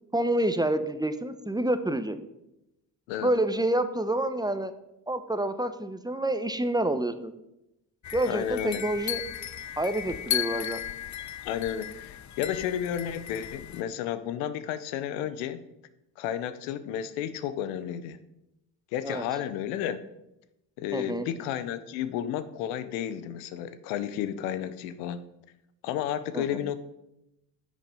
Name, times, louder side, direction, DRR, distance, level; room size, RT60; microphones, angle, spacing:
voice 1, 0.1-2.2 3.2-4.7 5.1-7.3 8.1-9.2 9.8-10.8 19.0-19.2 20.9-21.3 26.3-26.7, right 1 dB, 10° right, 10 dB, 0.9 m, -28 dB
sound 1, 8.0-13.8, left 11 dB, 40° left, 0.5 m, -35 dB
voice 2, 8.3-8.8 11.4-15.6 16.2-18.2 18.9-20.0 20.8-25.2 25.8-26.8, left 10 dB, 85° left, 13 dB, 0.7 m, -32 dB
9.9 x 6.2 x 5.3 m, 0.89 s
hypercardioid pair, 55°, 48 cm